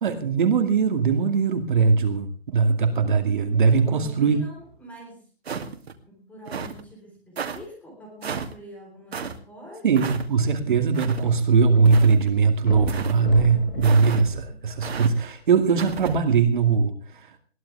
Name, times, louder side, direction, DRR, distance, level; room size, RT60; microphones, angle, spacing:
voice 1, 0.0-4.4 9.8-17.4, right 5 dB, 50° right, 7 dB, 2.4 m, -20 dB
voice 2, 3.7-5.3 6.1-9.9, right 1 dB, 5° left, 1 dB, 4.2 m, -45 dB
sound 1, 5.4-5.9 6.5-6.8 7.4-7.6 8.2-8.5 9.1-9.3 9.9-10.2 10.9-11.2 11.8-12.3 12.9-13.2 13.8-14.2 14.8-15.1 15.8-16.1, right 6 dB, 80° right, 2.5 m, -32 dB
sound 2, 10.3-11.8 12.1-12.2 12.6-15.2 15.9-16.0, left 2 dB, 65° left, 8.0 m, -34 dB
21.5 x 15.5 x 3.5 m, 0.41 s
hypercardioid pair, 175°, 31 cm